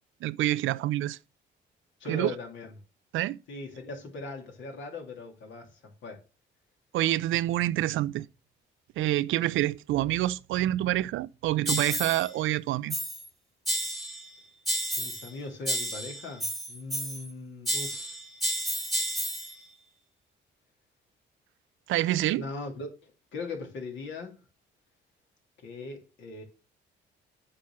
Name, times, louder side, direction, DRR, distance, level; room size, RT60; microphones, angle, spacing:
voice 1, 0.2-1.2 2.1-2.3 3.1-3.4 6.9-8.3 9.0-13.0 21.9-22.4, right 15 dB, 80° right, 0.4 m, -27 dB
voice 2, 2.0-2.7 3.5-6.2 15.0-18.2 22.3-24.4 25.6-26.4, left 3 dB, 70° left, 2.6 m, -39 dB
sound 1, 11.7-12.3 12.9-13.3 13.7-14.3 14.7-15.3 15.7-17.3 17.7-19.6, equal, ahead, 1.4 m, -31 dB
7.6 x 4.3 x 5.9 m
cardioid pair, 90°, 20 cm